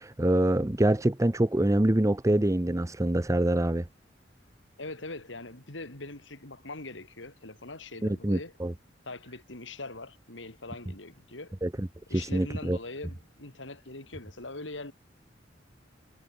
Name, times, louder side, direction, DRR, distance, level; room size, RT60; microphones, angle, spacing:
voice 1, 0.0-3.9 8.0-8.7 11.6-12.8, right 1 dB, 15° right, 0.8 m, -25 dB
voice 2, 4.8-8.5 9.1-11.5 12.1-14.9, left 2 dB, 85° left, 4.1 m, -42 dB
head